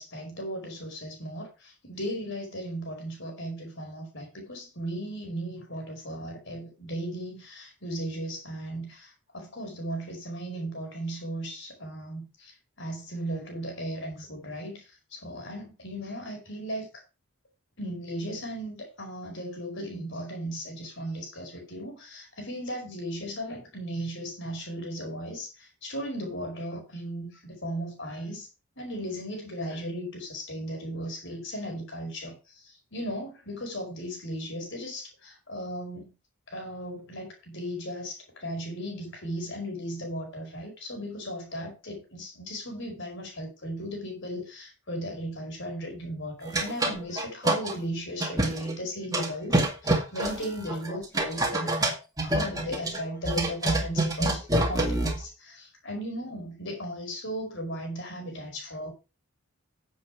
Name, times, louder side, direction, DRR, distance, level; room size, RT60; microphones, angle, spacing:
voice 1, 0.0-17.0 17.8-28.5 28.8-36.1 36.5-58.9, equal, 55° left, 5.1 m, -36 dB
sound 1, 46.5-47.7 48.2-48.7 49.1-55.2, right 2 dB, 15° right, 2.1 m, -27 dB
10.0 x 7.8 x 4.9 m
head